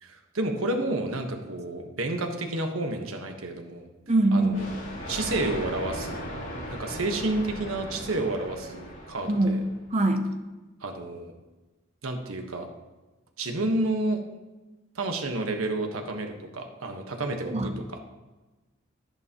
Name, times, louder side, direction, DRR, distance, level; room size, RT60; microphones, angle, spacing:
voice 1, 0.0-3.9 4.3-4.7 5.1-6.2 6.7-9.6 10.8-11.3 12.0-12.6 13.4-14.2 14.9-18.0, right 2 dB, 85° right, 4 dB, 1.3 m, -30 dB
voice 2, 4.1-4.6 9.3-10.3 17.4-17.7, right 2 dB, 35° right, 6 dB, 0.8 m, -23 dB
Thunder, 4.5-9.8, equal, 75° left, 3.7 m, -37 dB
11.5 x 10.5 x 3.0 m, 1.1 s
head